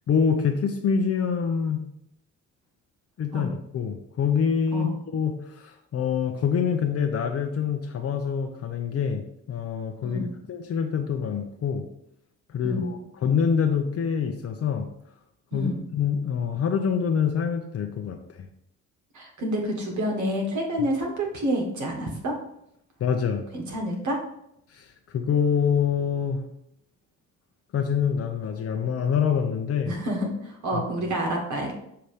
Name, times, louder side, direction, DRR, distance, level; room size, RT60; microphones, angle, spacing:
voice 1, 0.1-1.9 3.2-9.2 9.5-10.2 10.5-11.8 12.5-14.9 15.5-18.5 23.0-23.4 24.7-26.4 27.7-29.9 30.7-30.8, left 7 dB, 50° left, 4 dB, 0.7 m, -26 dB
voice 2, 10.0-10.3 12.6-12.9 15.5-15.8 19.1-22.3 23.5-24.2 29.9-31.7, equal, 70° right, 1 dB, 1.7 m, -28 dB
6.8 x 2.9 x 4.9 m, 0.76 s
cardioid pair, 90°, 30 cm